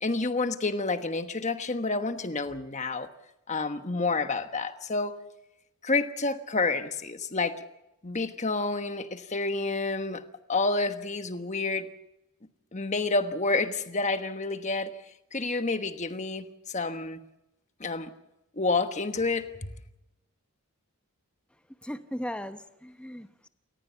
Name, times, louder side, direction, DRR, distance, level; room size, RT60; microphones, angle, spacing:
voice 1, 0.0-3.1 3.5-5.2 5.8-7.6 8.0-10.2 10.5-11.9 12.7-15.0 15.3-17.2 17.8-18.1 18.6-19.7, left 3 dB, 30° left, 1.2 m, -29 dB
voice 2, 21.8-23.5, equal, 5° left, 1.0 m, -37 dB
28.5 x 14.5 x 7.0 m
head